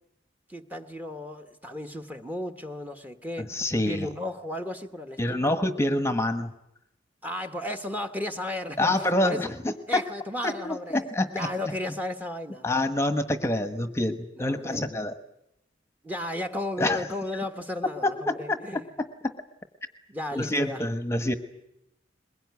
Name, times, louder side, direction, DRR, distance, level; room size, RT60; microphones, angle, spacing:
voice 1, 0.5-3.6 3.9-5.5 7.2-8.9 9.2-9.5 9.9-11.0 11.3-12.7 14.4-14.8 16.0-18.8 20.1-20.8, left 1 dB, 10° right, 6 dB, 1.3 m, -34 dB
voice 2, 3.4-4.1 5.2-6.5 8.8-10.0 10.4-11.5 12.6-15.2 16.8-17.1 18.0-19.3 20.3-21.3, left 1 dB, 15° left, 9 dB, 1.2 m, -27 dB
22.0 x 21.5 x 9.5 m, 0.82 s
head